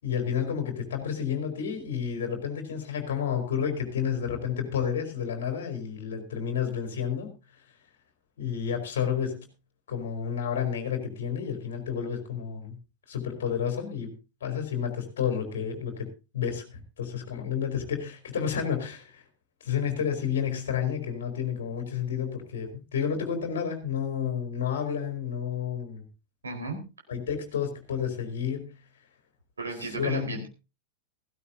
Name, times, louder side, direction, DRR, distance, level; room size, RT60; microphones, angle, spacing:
voice 1, 0.0-7.3 8.4-9.5 9.9-12.8 13.1-16.1 16.3-19.2 19.6-26.0 27.1-28.8 29.9-30.4, left 8 dB, 60° left, 5 dB, 3.9 m, -30 dB
voice 2, 26.4-26.8 29.6-30.5, right 3 dB, 75° right, 3 dB, 4.4 m, -34 dB
16.5 x 15.5 x 2.8 m, 0.30 s
figure-of-eight pair, 90°, 0 cm